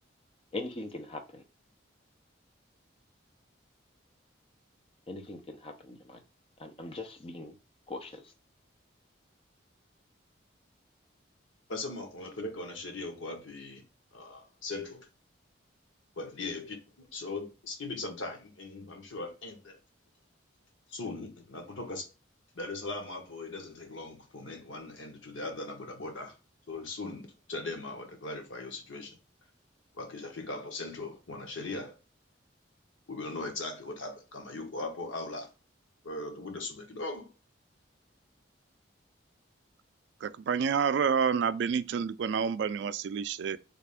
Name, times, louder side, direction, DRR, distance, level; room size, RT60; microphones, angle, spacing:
voice 1, 0.5-1.4 5.1-6.2 6.6-7.5 7.9-8.2, left 2 dB, 30° left, 0.6 m, -41 dB
voice 2, 11.7-13.8 14.1-15.1 16.2-19.8 20.9-22.1 22.5-26.3 26.7-29.2 29.9-32.0 33.1-35.5 36.0-37.3, left 2 dB, 85° left, 1.0 m, -39 dB
voice 3, 40.2-43.6, right 6 dB, 60° right, 0.3 m, -28 dB
3.4 x 2.5 x 3.4 m
head